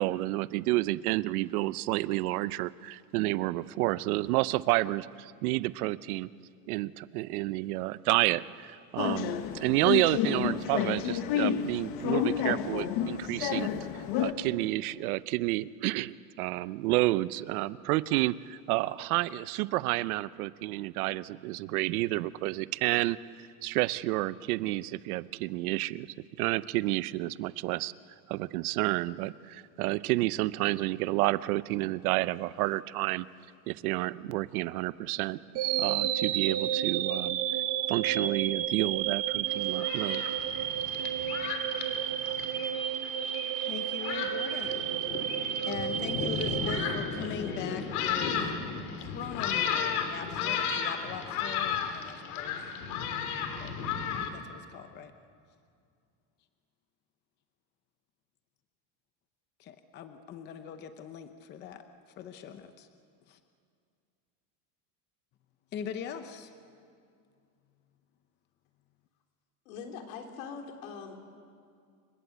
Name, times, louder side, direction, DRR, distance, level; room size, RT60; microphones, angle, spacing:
voice 1, 0.0-6.3 6.7-13.7 14.2-23.2 23.6-26.1 26.4-27.9 28.3-33.3 33.7-35.4 35.8-37.4 37.9-40.2, right 18 dB, 80° right, 17 dB, 0.8 m, -30 dB
sound 1, 9.0-14.3, left 10 dB, 50° left, 1.4 m, -30 dB
sound 2, 35.5-47.7, right 10 dB, 35° right, 1.0 m, -32 dB
Thunderstorm, 39.5-54.3, left 7 dB, 90° left, 3.2 m, -34 dB
voice 2, 43.7-44.9 45.7-48.4 49.0-52.5 53.6-53.7 54.3-55.1 59.9-61.9 62.2-62.9 63.3-63.4 65.7-66.5, left 8 dB, 25° left, 8 dB, 0.7 m, -41 dB
voice 3, 69.7-71.2, left 6 dB, 70° left, 3 dB, 4.0 m, -42 dB
29.5 x 24.5 x 8.2 m, 2.3 s
cardioid pair, 175°, 43 cm